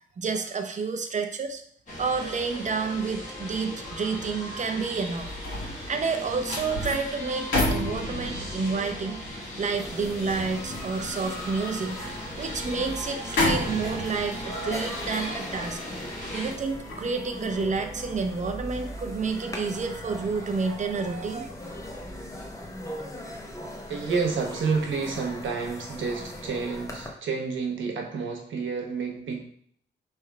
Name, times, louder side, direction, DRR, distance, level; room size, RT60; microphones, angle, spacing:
voice 1, 0.2-1.6 2.0-5.3 5.6-9.2 9.6-12.0 12.4-15.8 16.3-21.5, right 4 dB, 40° right, 6 dB, 0.5 m, -29 dB
sound 1, 1.9-16.5, equal, 40° left, 1.6 m, -38 dB
sound 2, 5.0-18.3 18.7-18.9, left 1 dB, 85° left, 1.7 m, -33 dB
sound 3, 9.7-27.1, left 1 dB, 15° left, 0.8 m, -39 dB
voice 2, 23.9-29.4, right 5 dB, 80° right, 2 dB, 1.0 m, -29 dB
3.4 x 3.2 x 4.7 m, 0.62 s
wide cardioid pair, 135°, 20 cm